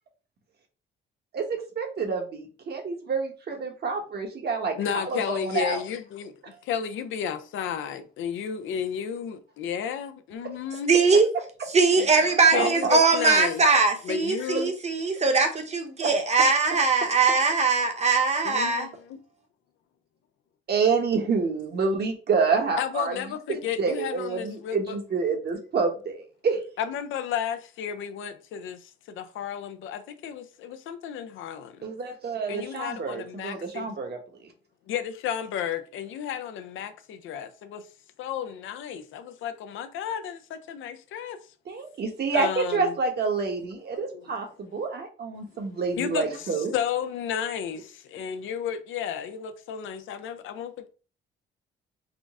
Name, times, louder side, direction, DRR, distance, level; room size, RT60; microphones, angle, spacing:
voice 1, 1.3-5.8 12.1-12.9 16.0-16.1 20.7-26.6 31.8-34.2 41.7-46.7, right 4 dB, 55° right, 1.1 m, -28 dB
voice 2, 4.8-6.3 6.6-10.9 12.0-12.1 12.5-13.6 14.0-14.7 18.4-19.2 22.8-25.0 26.8-31.8 32.5-33.9 34.9-37.8 38.2-41.4 42.3-42.9 44.1-44.2 46.0-50.9, left 8 dB, 80° left, 0.5 m, -32 dB
voice 3, 10.9-11.3 11.7-18.9, right 4 dB, 35° right, 0.9 m, -21 dB
3.8 x 2.1 x 3.5 m
cardioid pair, 90°, 20 cm